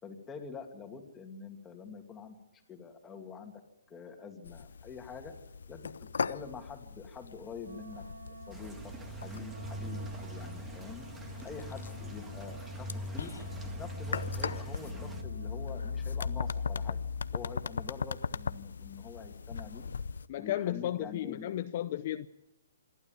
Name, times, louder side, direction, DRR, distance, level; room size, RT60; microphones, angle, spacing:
voice 1, 0.0-2.4 2.7-3.5 3.9-5.3 5.7-8.8 9.1-11.1 11.4-13.3 13.8-17.0 17.3-19.9 20.4-21.5, left 6 dB, 10° left, 2.6 m, -46 dB
sound 1, 4.4-20.3, left 5 dB, 80° left, 0.7 m, -39 dB
Wind instrument woodwind instrument, 7.6-16.0, right 5 dB, 90° right, 1.8 m, -52 dB
sound 2, 8.5-15.2, right 1 dB, 10° right, 1.9 m, -42 dB
voice 2, 20.3-22.3, left 12 dB, 45° left, 0.7 m, -34 dB
26.5 x 12.0 x 9.3 m
hypercardioid pair, 155°, 0 cm